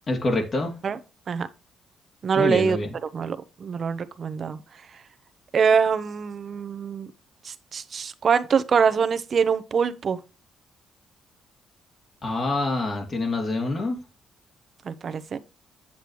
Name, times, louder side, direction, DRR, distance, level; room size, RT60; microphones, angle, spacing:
voice 1, 0.1-0.7 2.4-2.9 12.2-14.0, left 2 dB, 40° left, 2.6 m, -26 dB
voice 2, 2.2-2.8 3.1-4.6 5.5-7.1 7.4-10.2 14.8-15.4, right 6 dB, 50° right, 0.8 m, -24 dB
8.6 x 7.9 x 3.0 m
cardioid pair, 90°, 0 cm